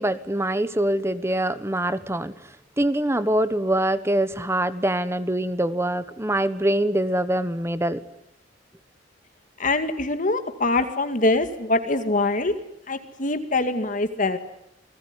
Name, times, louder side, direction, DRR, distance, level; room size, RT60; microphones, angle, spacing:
voice 1, 0.0-2.3 2.8-8.0, right 1 dB, 15° right, 13 dB, 1.2 m, -24 dB
voice 2, 9.6-12.5 12.9-14.4, left 2 dB, 45° left, 9 dB, 2.2 m, -23 dB
29.5 x 20.5 x 9.8 m, 0.79 s
head